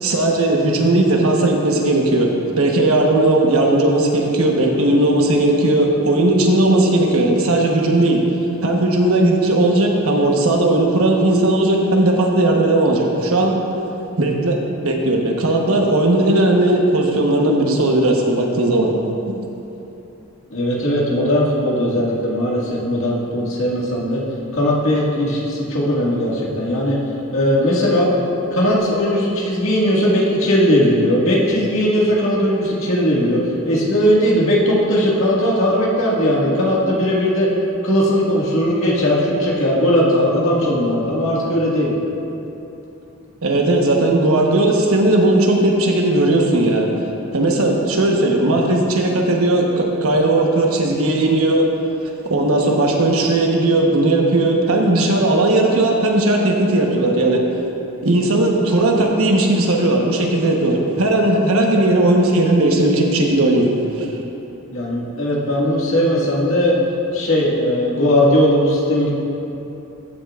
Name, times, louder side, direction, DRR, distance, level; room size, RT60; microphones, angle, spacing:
voice 1, 0.0-8.2 8.6-13.6 14.2-18.9 43.4-46.9 47.3-51.7 52.3-57.4 58.0-64.1, right 2 dB, 85° right, 0 dB, 1.1 m, -17 dB
voice 2, 20.5-24.2 24.5-27.0 27.3-28.1 28.5-37.5 37.8-41.9 64.7-66.8 67.1-69.1, equal, 70° left, -5 dB, 1.9 m, -18 dB
13.5 x 8.6 x 2.5 m, 2.9 s
head